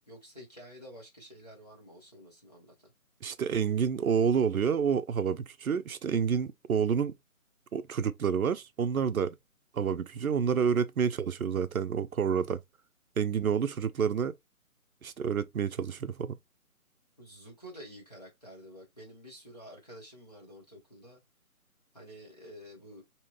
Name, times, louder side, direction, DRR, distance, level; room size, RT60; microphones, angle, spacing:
voice 1, 0.1-2.9 13.3-13.9 17.2-21.2 21.9-23.0, equal, 25° left, 1.1 m, -50 dB
voice 2, 3.2-7.1 7.7-9.4 9.7-12.6 13.2-14.3 15.0-16.4, right 7 dB, 75° right, 0.6 m, -29 dB
3.1 x 3.0 x 2.9 m
hypercardioid pair, 180°, 43 cm